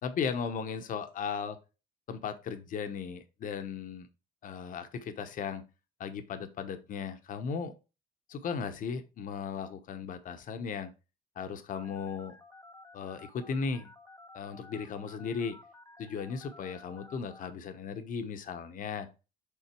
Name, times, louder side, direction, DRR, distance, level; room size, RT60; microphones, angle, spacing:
voice 1, 0.0-1.6 2.1-4.1 4.4-5.6 6.0-7.7 8.3-10.9 11.4-12.4 12.9-13.9 14.3-15.6 16.0-19.1, left 6 dB, 55° left, 8 dB, 1.0 m, -36 dB
Telephone, 11.7-17.5, left 2 dB, 15° left, 0.9 m, -54 dB
7.0 x 4.0 x 4.4 m, 0.29 s
cardioid pair, 110°, 17 cm